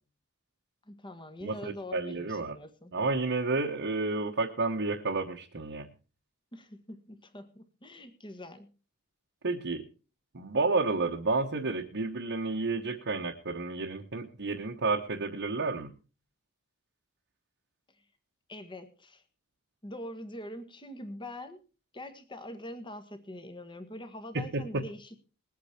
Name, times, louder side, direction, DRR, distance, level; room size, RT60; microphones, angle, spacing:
voice 1, 0.9-2.9 6.5-8.7 18.5-19.2 19.8-21.6 21.9-25.2, left 1 dB, 20° left, 9 dB, 1.5 m, -44 dB
voice 2, 1.4-2.5 2.9-5.9 9.4-9.8 10.3-15.9 24.3-24.8, right 3 dB, 55° right, 0 dB, 1.2 m, -31 dB
20.5 x 8.4 x 4.4 m, 0.34 s
head